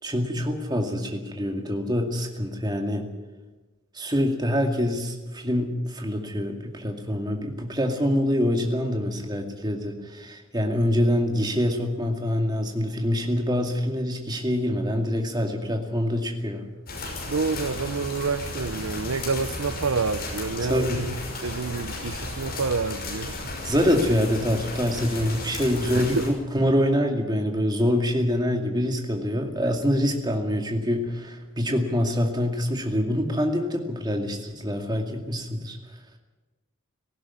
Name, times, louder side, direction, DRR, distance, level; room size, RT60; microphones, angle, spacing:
voice 1, 0.0-3.1 3.9-16.6 20.6-21.0 23.6-26.2 26.5-35.8, equal, 20° right, 3 dB, 2.3 m, -25 dB
sound 1, 16.9-26.3, left 2 dB, 45° left, 6.0 m, -34 dB
voice 2, 17.3-21.1 21.4-23.4 25.9-26.3, right 4 dB, 75° right, 12 dB, 0.7 m, -28 dB
18.0 x 15.5 x 9.8 m, 1.2 s
head